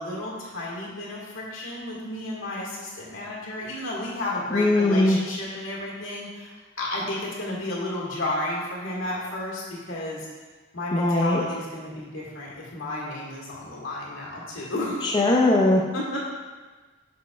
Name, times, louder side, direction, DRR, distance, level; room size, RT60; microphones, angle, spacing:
voice 1, 0.0-10.3 10.7-15.2 15.9-16.2, left 1 dB, 80° left, -5 dB, 1.8 m, -32 dB
voice 2, 4.5-5.2 10.9-11.4 15.0-15.8, left 2 dB, 20° left, -2 dB, 0.4 m, -20 dB
7.2 x 6.1 x 2.4 m, 1.3 s
head